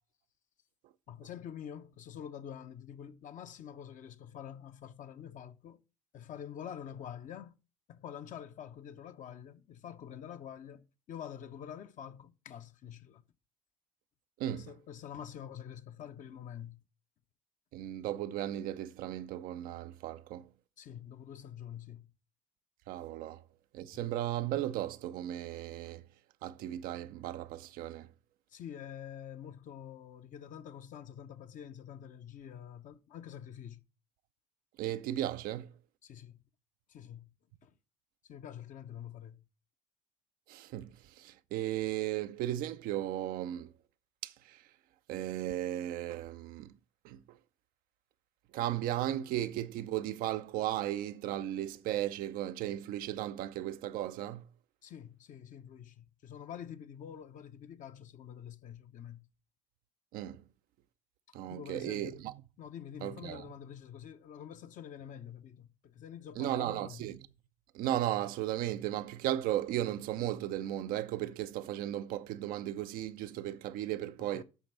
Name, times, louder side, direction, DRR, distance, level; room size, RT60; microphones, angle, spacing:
voice 1, 1.1-5.8 6.1-7.5 7.9-13.2 14.5-16.8 20.8-22.1 23.9-24.0 28.5-33.8 36.0-36.4 36.9-37.3 37.6-37.7 38.3-39.4 54.8-59.3 61.3-62.2 62.6-67.1 74.2-74.4, left 9 dB, 50° left, 0.9 m, -47 dB
voice 2, 17.7-20.5 22.9-23.4 23.7-26.0 26.4-28.1 34.8-35.7 40.5-40.9 41.2-43.7 44.2-44.6 45.1-46.7 47.0-47.2 48.5-54.4 60.1-60.4 61.3-62.3 63.0-63.4 66.4-67.2 67.7-74.4, right 13 dB, 60° right, 0.6 m, -35 dB
8.1 x 6.0 x 5.9 m
figure-of-eight pair, 50°, 17 cm